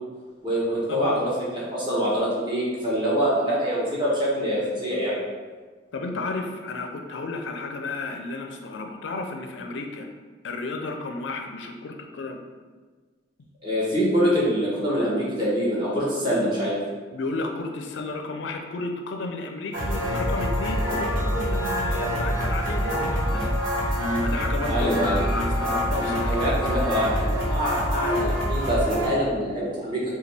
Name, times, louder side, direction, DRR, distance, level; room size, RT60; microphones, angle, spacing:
voice 1, 0.4-5.2 13.6-16.8 24.7-25.2 26.3-30.1, equal, 25° right, -7 dB, 1.1 m, -25 dB
voice 2, 5.9-10.1 10.4-12.4 17.1-23.5 24.2-26.4, left 3 dB, 65° left, 4 dB, 0.4 m, -32 dB
sound 1, 19.7-29.1, equal, 85° right, 1.3 m, -25 dB
5.0 x 2.3 x 3.3 m, 1.4 s
head